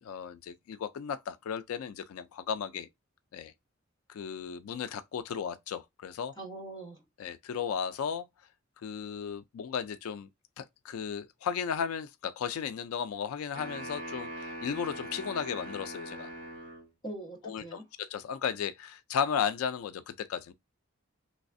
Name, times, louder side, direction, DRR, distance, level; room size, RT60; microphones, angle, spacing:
voice 1, 0.0-2.9 3.3-3.5 4.1-6.3 7.2-8.3 8.8-10.3 10.6-16.3 17.4-20.5, left 7 dB, 85° left, 0.3 m, -35 dB
voice 2, 6.4-7.0 17.0-17.8, right 2 dB, 20° left, 1.1 m, -42 dB
sound 1, 13.5-16.9, right 1 dB, 40° right, 1.8 m, -41 dB
3.3 x 3.1 x 2.5 m
head